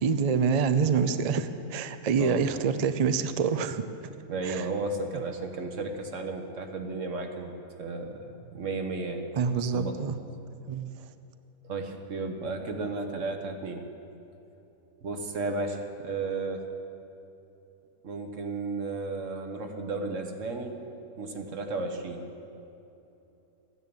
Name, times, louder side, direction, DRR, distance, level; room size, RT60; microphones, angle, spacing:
voice 1, 0.0-3.8 4.4-4.7 9.4-10.1 10.7-10.9, right 6 dB, 85° right, 9 dB, 0.3 m, -26 dB
voice 2, 4.3-7.5 7.8-9.3 9.6-10.0 11.6-13.9 15.0-16.7 18.0-20.8 21.2-22.3, right 3 dB, 60° right, 5 dB, 1.5 m, -33 dB
14.5 x 10.0 x 8.7 m, 2.9 s
omnidirectional pair, 1.6 m